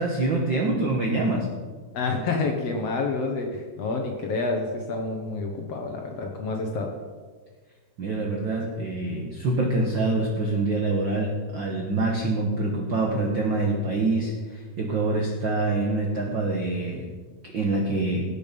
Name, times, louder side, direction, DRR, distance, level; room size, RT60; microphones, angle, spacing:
voice 1, 0.0-1.5 8.0-17.1 17.4-18.2, right 2 dB, 60° right, -1 dB, 1.2 m, -25 dB
voice 2, 1.9-6.9, left 3 dB, 65° left, 2 dB, 1.7 m, -28 dB
17.5 x 6.9 x 5.2 m, 1.5 s
omnidirectional pair, 3.9 m